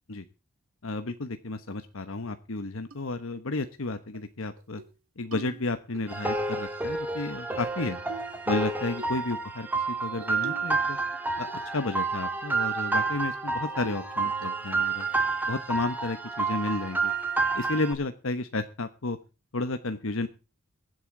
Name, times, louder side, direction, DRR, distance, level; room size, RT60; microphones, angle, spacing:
voice 1, 0.8-4.8 5.2-8.0 8.5-11.0 11.4-11.5 11.7-15.1 15.5-17.1 17.5-19.2 19.5-20.3, left 2 dB, 70° left, 9 dB, 1.1 m, -32 dB
sound 1, 2.9-3.0 3.6-3.8 4.1-4.2 4.6-4.9 5.3-6.0 7.1-7.7 8.1-8.4 9.0-9.2 10.2-10.8 11.1-11.8 12.2-12.3 12.6-12.8 13.2-13.3 13.8-14.1 14.4-14.8, right 3 dB, 75° right, 2.1 m, -45 dB
sound 2, 6.1-17.9, right 3 dB, 10° right, 2.2 m, -29 dB
23.0 x 8.2 x 3.8 m, 0.31 s
head